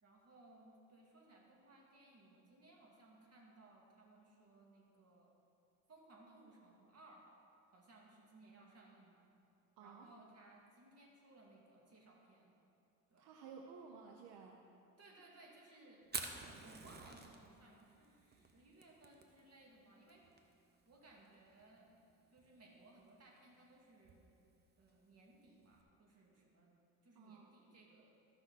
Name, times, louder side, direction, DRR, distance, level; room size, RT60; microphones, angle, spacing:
voice 1, 0.0-5.3 5.9-7.3 7.7-9.2 9.8-12.5 13.1-13.3 15.0-16.1 16.4-20.3 20.9-21.9 22.3-24.2 24.8-26.8 27.0-28.1, right 2 dB, 45° right, -2 dB, 2.3 m, -63 dB
voice 2, 9.8-10.1 13.2-14.6 27.2-27.5, right 5 dB, 80° right, 2 dB, 0.8 m, -55 dB
Fire, 16.0-25.8, right 4 dB, 30° right, 1.0 m, -52 dB
14.0 x 5.9 x 4.1 m, 2.5 s
supercardioid pair, 75°, 36 cm